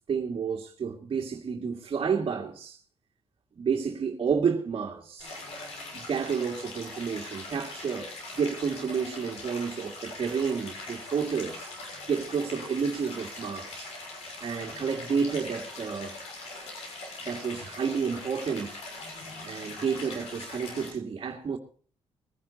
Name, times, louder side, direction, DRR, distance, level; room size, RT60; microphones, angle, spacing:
voice 1, 0.1-2.8 3.6-5.4 5.9-13.9 14.4-16.2 17.2-18.9 19.4-21.6, right 6 dB, 50° right, 2.1 m, -30 dB
Stream, 5.2-20.9, left 2 dB, 90° left, 6.3 m, -41 dB
21.0 x 11.0 x 4.2 m
cardioid pair, 95°, 10 cm